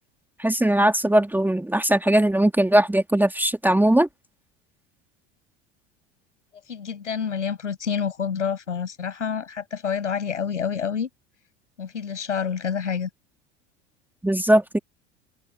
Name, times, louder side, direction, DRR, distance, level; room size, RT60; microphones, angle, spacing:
voice 1, 0.4-4.1 14.2-14.8, right 1 dB, 5° right, 2.1 m, -19 dB
voice 2, 6.7-11.1 11.8-13.1, left 7 dB, 90° left, 7.9 m, -28 dB
open air
hypercardioid pair, 75°, 35 cm